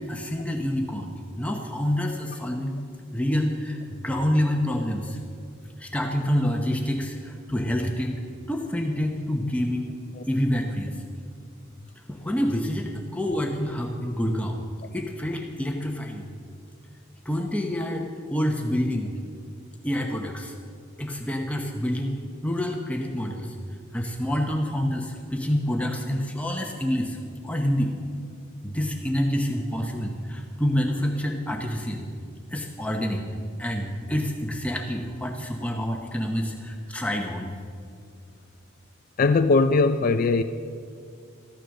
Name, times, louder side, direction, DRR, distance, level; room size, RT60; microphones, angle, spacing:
voice 1, 0.0-2.8 3.1-5.2 5.8-8.2 8.5-9.9 10.2-11.0 12.1-14.6 14.9-16.3 17.2-19.1 19.8-20.5 21.0-22.2 22.4-23.6 23.9-27.2 27.4-27.9 28.6-32.1 32.5-33.3 33.6-37.5, equal, 5° left, 2 dB, 0.8 m, -27 dB
voice 2, 39.2-40.4, left 3 dB, 45° left, 8 dB, 0.4 m, -20 dB
14.0 x 9.8 x 6.4 m, 2.3 s
head